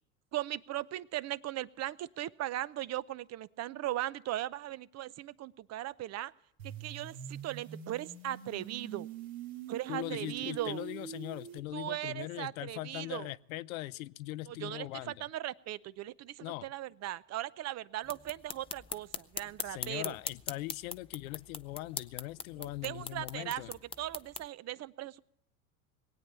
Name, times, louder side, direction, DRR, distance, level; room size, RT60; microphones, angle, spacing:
voice 1, 0.3-6.3 6.6-9.1 9.7-10.8 11.7-13.3 14.5-20.2 22.6-25.2, right 14 dB, 40° right, 18 dB, 0.6 m, -38 dB
sound 1, 6.6-11.6, right 9 dB, 80° right, 2.0 m, -44 dB
voice 2, 9.9-15.1 16.4-16.7 19.6-23.7, left 17 dB, 80° left, 18 dB, 0.7 m, -40 dB
sound 2, 18.0-24.5, left 5 dB, 15° left, 0.5 m, -42 dB
20.0 x 8.8 x 6.7 m, 0.78 s
hypercardioid pair, 90°, 41 cm